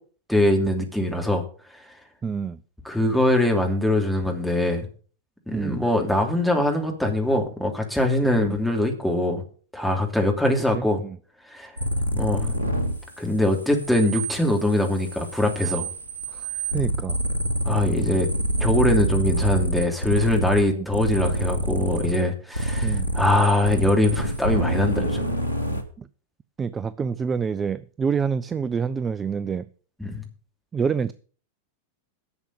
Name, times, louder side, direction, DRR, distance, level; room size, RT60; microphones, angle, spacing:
voice 1, 0.3-1.4 2.8-4.9 5.5-9.4 9.7-11.0 11.5-11.7 12.1-12.5 13.2-15.9 17.6-18.3 18.6-25.3 30.0-30.2, left 1 dB, ahead, 2.8 m, -22 dB
voice 2, 2.2-2.6 5.5-5.8 8.4-8.6 10.5-11.2 16.3-16.5 16.7-17.2 20.7-20.9 22.8-23.1 25.6-25.7 26.0-26.1 26.6-29.7 30.7-31.1, right 6 dB, 20° right, 0.5 m, -27 dB
sound 1, 11.8-13.0 13.3-20.6 20.9-22.2 22.5-25.8, right 1 dB, 80° right, 1.8 m, -26 dB
11.5 x 7.1 x 6.8 m
figure-of-eight pair, 90°, 0 cm